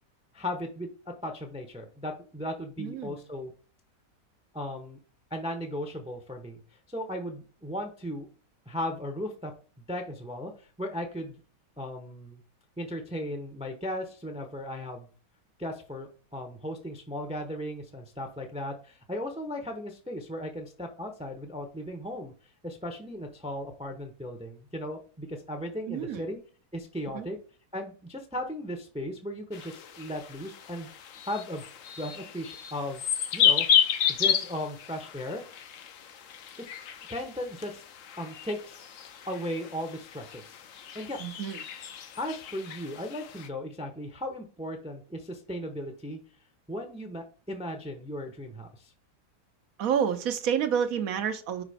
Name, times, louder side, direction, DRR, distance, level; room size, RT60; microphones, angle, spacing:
voice 1, 0.3-3.5 4.5-5.0 5.3-6.6 6.9-8.3 8.7-9.5 9.9-11.4 11.8-12.4 12.8-15.1 15.6-22.3 22.6-26.4 26.7-27.4 27.7-30.9 31.2-31.6 32.0-33.0 33.3-33.7 34.1-35.4 37.1-37.8 38.2-38.8 39.2-40.6 40.9-41.2 42.2-46.2 46.7-48.9, left 1 dB, 5° right, 0.6 m, -36 dB
voice 2, 2.8-3.2 25.9-26.3 27.1-27.3 41.2-41.6 49.8-51.6, right 8 dB, 70° right, 1.1 m, -29 dB
sound 1, 29.5-43.5, left 8 dB, 65° left, 1.0 m, -31 dB
4.9 x 4.9 x 4.9 m
omnidirectional pair, 1.6 m